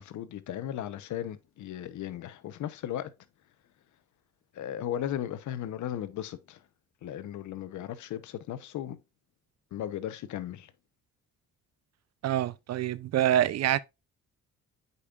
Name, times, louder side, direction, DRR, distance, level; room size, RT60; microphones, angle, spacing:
voice 1, 0.0-3.1 4.5-6.6 7.0-9.0 9.7-10.7, left 11 dB, 75° left, 0.9 m, -36 dB
voice 2, 12.2-13.8, right 12 dB, 60° right, 0.5 m, -26 dB
8.3 x 5.3 x 2.4 m
cardioid pair, 90°, 30 cm